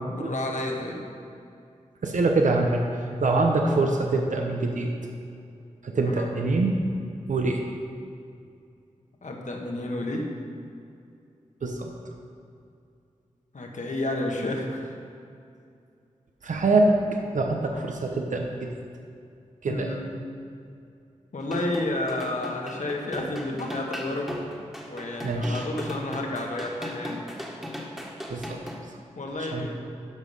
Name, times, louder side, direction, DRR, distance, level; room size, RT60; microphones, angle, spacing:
voice 1, 0.1-1.0 6.0-6.3 9.2-10.3 13.5-14.9 19.6-20.1 21.3-24.4 24.9-27.2 29.2-29.8, left 1 dB, 70° left, 0 dB, 1.5 m, -31 dB
voice 2, 2.0-2.8 3.2-4.9 5.8-6.8 7.3-7.6 11.6-11.9 16.4-17.0 17.3-18.7 19.6-19.9 25.2-25.6 28.3-28.6 29.4-29.7, right 2 dB, 75° right, 2 dB, 0.9 m, -24 dB
sound 1, 21.4-28.8, left 1 dB, 5° right, 1.7 m, -37 dB
13.0 x 5.3 x 5.6 m, 2.5 s
cardioid pair, 45°, 13 cm